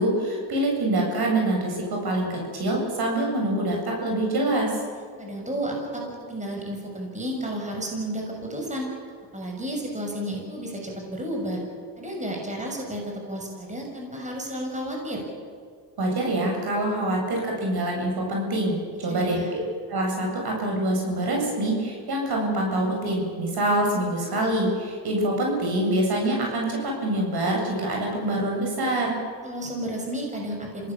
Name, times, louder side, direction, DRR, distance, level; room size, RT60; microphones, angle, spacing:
voice 1, 0.0-4.7 16.0-19.6 19.9-29.2, right 1 dB, 60° right, 0 dB, 7.9 m, -25 dB
voice 2, 5.2-6.0 6.3-8.9 9.3-11.6 12.0-15.2 19.1-19.5 29.4-30.9, right 1 dB, 15° right, 0 dB, 6.7 m, -32 dB
26.0 x 18.0 x 7.1 m, 2.1 s
cardioid pair, 80°, 43 cm